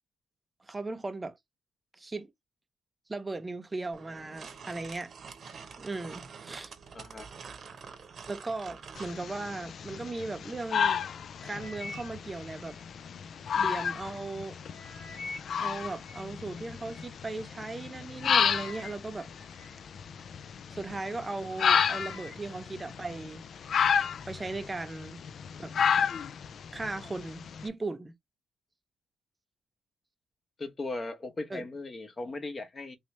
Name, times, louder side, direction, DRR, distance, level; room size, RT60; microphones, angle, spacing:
voice 1, 0.6-1.4 1.9-2.3 3.1-5.1 5.8-6.7 8.3-11.0 11.4-12.8 13.6-14.6 15.6-19.8 20.7-23.4 24.3-25.2 25.6-25.7 26.7-28.1 31.5-31.6, right 3 dB, 20° right, 0.5 m, -37 dB
sound 1, 3.9-9.2, right 6 dB, 50° right, 0.9 m, -46 dB
voice 2, 6.9-7.3 30.6-33.0, left 2 dB, 35° left, 0.9 m, -38 dB
sound 2, 9.0-27.7, left 7 dB, 55° left, 0.3 m, -32 dB
sound 3, 11.4-13.7 14.2-17.1 17.8-17.9 18.2-20.6 21.1-21.4 21.7-23.2 23.5-24.0 24.6-24.7, left 3 dB, 85° left, 1.2 m, -47 dB
3.1 x 3.0 x 3.1 m
cardioid pair, 90°, 0 cm